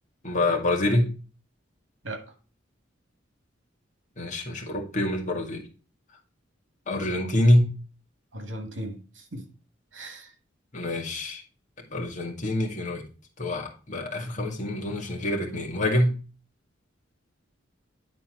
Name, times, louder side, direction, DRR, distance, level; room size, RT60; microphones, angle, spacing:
voice 1, 0.2-1.1 4.2-5.6 6.9-7.7 10.7-11.4 11.9-13.0 13.4-16.1, left 1 dB, 40° left, 2.1 m, -25 dB
voice 2, 8.3-9.5 9.9-10.3, right 1 dB, 80° right, 2.1 m, -37 dB
9.7 x 4.3 x 4.4 m
head